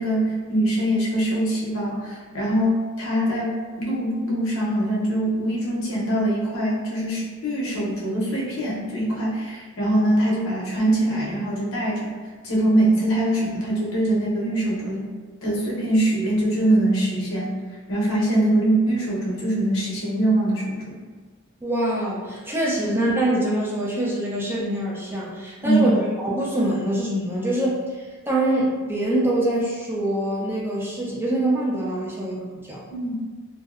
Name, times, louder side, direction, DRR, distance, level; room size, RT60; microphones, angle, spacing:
voice 1, 0.0-15.0 15.4-17.5 17.9-21.0 22.8-22.9 25.6-25.9 32.9-33.1, right 1 dB, 75° left, -4 dB, 0.7 m, -23 dB
voice 2, 21.6-32.8, right 1 dB, 10° right, -5 dB, 0.3 m, -24 dB
2.6 x 2.0 x 2.4 m, 1.4 s
head